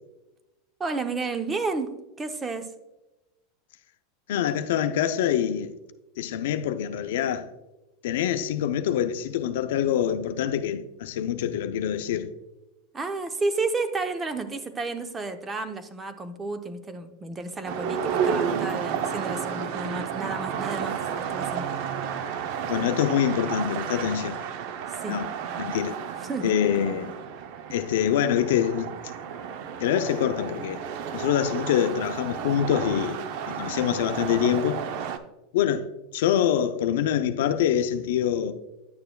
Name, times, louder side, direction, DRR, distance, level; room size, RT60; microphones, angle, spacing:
voice 1, 0.8-2.7 12.9-21.7 24.9-25.2 26.2-26.5, right 3 dB, 20° right, 0.8 m, -31 dB
voice 2, 4.3-5.7 6.2-7.5 8.0-12.3 22.7-24.4 25.1-25.3 25.6-26.0 26.4-27.1 27.7-28.9 29.8-30.8 31.1-33.2 33.5-34.8 35.5-38.5, left 9 dB, 75° left, 0.5 m, -25 dB
sound 1, 17.7-35.2, right 7 dB, 60° right, 0.6 m, -32 dB
10.0 x 6.7 x 2.3 m
hypercardioid pair, 105°, 0 cm